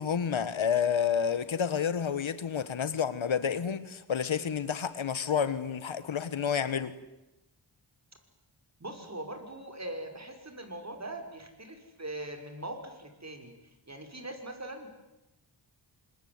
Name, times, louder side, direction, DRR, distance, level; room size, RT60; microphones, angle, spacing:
voice 1, 0.0-7.0, left 7 dB, 85° left, 1.5 m, -29 dB
voice 2, 8.8-13.5 13.9-14.9, right 1 dB, 35° right, 5.7 m, -41 dB
25.5 x 21.5 x 9.6 m
cardioid pair, 60°, 46 cm